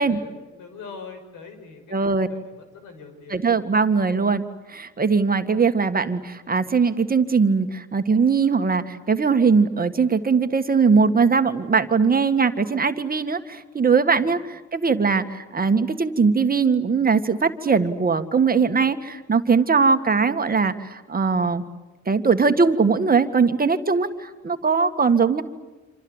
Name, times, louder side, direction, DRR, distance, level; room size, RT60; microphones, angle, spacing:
voice 1, 0.0-3.5 14.2-14.3, left 5 dB, 85° left, 7 dB, 6.1 m, -42 dB
voice 2, 1.9-2.3 3.3-21.6 22.1-25.4, right 5 dB, 30° right, 8 dB, 1.8 m, -20 dB
27.0 x 27.0 x 8.1 m, 1.2 s
cardioid pair, 90°, 30 cm